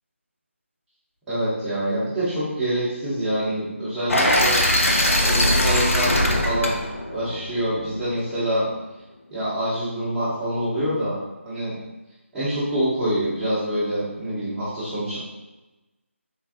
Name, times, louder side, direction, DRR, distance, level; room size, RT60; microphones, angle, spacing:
voice 1, 1.3-4.6 5.2-6.8 7.1-8.7 9.3-11.2 11.4-11.7 12.3-15.2, right 1 dB, 5° right, -14 dB, 0.5 m, -26 dB
sound 1, 4.1-8.1, left 1 dB, 80° left, 0.5 m, -21 dB
3.4 x 2.2 x 2.3 m, 1.0 s
figure-of-eight pair, 160°, 7 cm